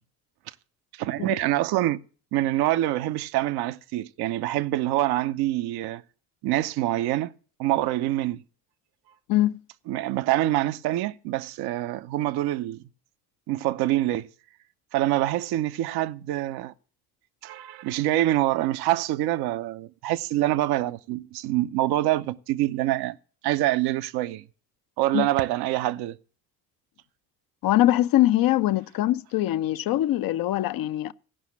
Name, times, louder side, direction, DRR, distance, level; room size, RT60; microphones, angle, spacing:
voice 1, 0.9-2.0 2.3-6.0 6.4-7.3 7.6-8.4 9.9-12.8 13.5-14.3 14.9-16.7 17.4-23.2 23.4-24.4 25.0-26.2, right 15 dB, 60° right, 0.7 m, -25 dB
voice 2, 27.6-31.1, left 14 dB, 50° left, 0.6 m, -22 dB
16.5 x 5.7 x 7.2 m
hypercardioid pair, 50°, 44 cm